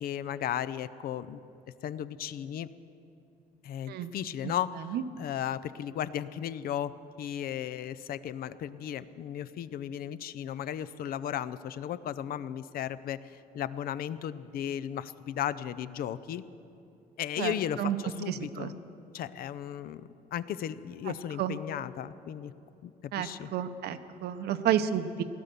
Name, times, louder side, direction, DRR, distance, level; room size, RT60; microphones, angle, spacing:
voice 1, 0.0-1.4 1.8-2.7 3.6-16.4 17.2-18.7 19.1-22.5 22.8-23.5, left 10 dB, 60° left, 15 dB, 0.6 m, -35 dB
voice 2, 17.4-18.0 18.3-18.7 21.1-21.6 23.1-25.2, right 10 dB, 70° right, 10 dB, 0.8 m, -31 dB
17.0 x 11.5 x 6.9 m, 2.7 s
cardioid pair, 110°, 17 cm